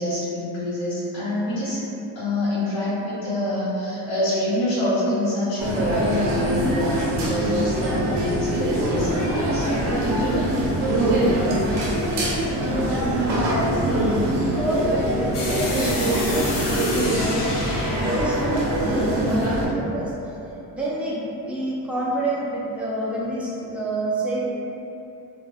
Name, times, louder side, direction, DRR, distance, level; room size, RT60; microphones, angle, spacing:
voice 1, 0.0-1.8 2.1-9.7, left 1 dB, 85° left, -13 dB, 1.1 m, -26 dB
sound 1, 5.6-19.7, right 1 dB, 75° right, 0.7 m, -23 dB
voice 2, 12.7-17.5 18.0-20.1 20.7-24.4, right 1 dB, 5° right, -7 dB, 0.3 m, -28 dB
sound 2, 15.3-20.2, left 2 dB, 50° left, 0.5 m, -31 dB
3.3 x 2.2 x 2.2 m, 2.9 s
cardioid pair, 130°, 42 cm